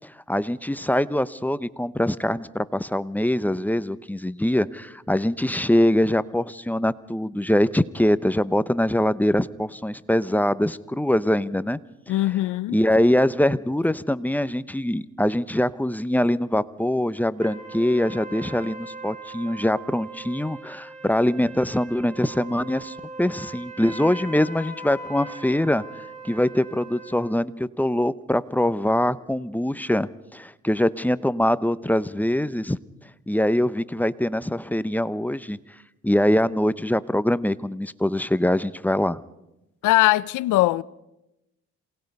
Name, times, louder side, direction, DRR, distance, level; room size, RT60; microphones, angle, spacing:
voice 1, 0.0-11.8 12.7-25.8 26.2-32.8 33.3-35.6 36.0-39.2, left 1 dB, 5° left, 0.7 m, -23 dB
voice 2, 12.1-12.8 39.8-40.8, left 17 dB, 90° left, 0.6 m, -20 dB
sound 1, 17.4-27.3, right 2 dB, 25° right, 4.3 m, -40 dB
27.5 x 19.0 x 5.4 m
cardioid pair, 90°, 30 cm